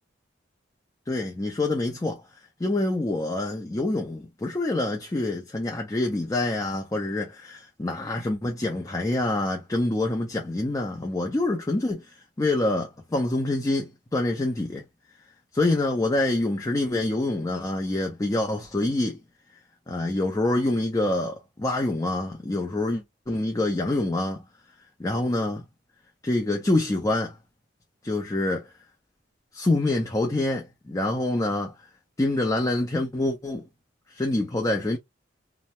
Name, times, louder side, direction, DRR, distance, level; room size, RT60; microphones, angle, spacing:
voice 1, 1.1-2.2 2.6-12.1 12.4-14.8 15.5-19.2 19.9-24.4 25.0-25.6 26.2-27.3 28.0-28.7 29.5-31.7 32.2-33.6 34.1-35.0, left 2 dB, 20° left, 0.5 m, -26 dB
2.7 x 2.1 x 3.0 m
head